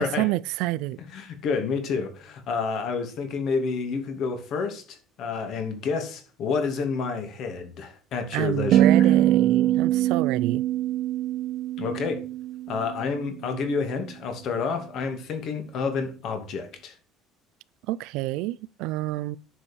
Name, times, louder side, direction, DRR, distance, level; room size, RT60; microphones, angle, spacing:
voice 1, 0.0-1.0 8.3-10.6 17.9-19.4, right 17 dB, 70° right, 0.5 m, -28 dB
voice 2, 1.1-9.1 11.8-12.2 12.7-16.9, left 5 dB, 45° left, 2.5 m, -29 dB
sound 1, 8.7-13.0, right 12 dB, 45° right, 0.8 m, -22 dB
9.9 x 7.2 x 4.5 m
cardioid pair, 165°, 0 cm